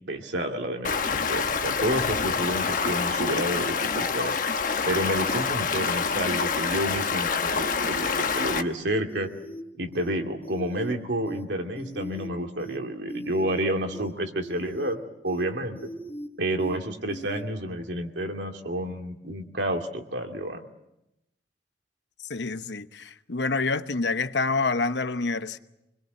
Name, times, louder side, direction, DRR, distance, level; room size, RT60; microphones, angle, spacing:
voice 1, 0.1-4.3 4.9-9.3 9.8-15.8 16.4-20.6, right 1 dB, 85° right, 2.5 m, -30 dB
Stream, 0.8-8.6, left 5 dB, 50° left, 1.1 m, -27 dB
sound 1, 1.4-1.6 1.9-2.1 2.4-2.9 3.3-3.4 3.8-4.3 4.6-4.8 5.1-5.6 5.9-6.1 6.4-6.9 7.3-7.4 7.8-8.3 8.6-8.8 9.1-9.6 9.9-10.1 10.4-10.9 11.3-11.4 11.8-12.3 12.6-12.8 13.1-13.6 13.9-14.1 14.4-14.9 15.3-15.4 15.8-16.3 16.6-16.8 17.1-17.4, left 1 dB, 10° left, 3.7 m, -40 dB
voice 2, 22.3-25.6, left 3 dB, 85° left, 1.0 m, -27 dB
26.0 x 21.5 x 7.8 m
head